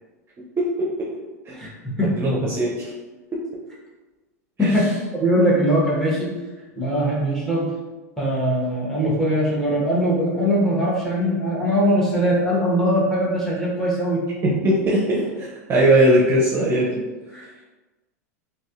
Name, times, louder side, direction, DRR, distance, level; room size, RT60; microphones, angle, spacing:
voice 1, 0.6-1.1 1.5-1.6 2.0-2.9 4.6-4.9 14.4-17.0, right 1 dB, 25° right, -4 dB, 0.7 m, -20 dB
voice 2, 1.5-2.1 4.6-4.8 5.1-6.3 6.8-7.7 8.2-14.2 17.3-17.6, equal, 5° left, -5 dB, 1.3 m, -21 dB
4.0 x 2.8 x 2.5 m, 1.2 s
hypercardioid pair, 95°, 9 cm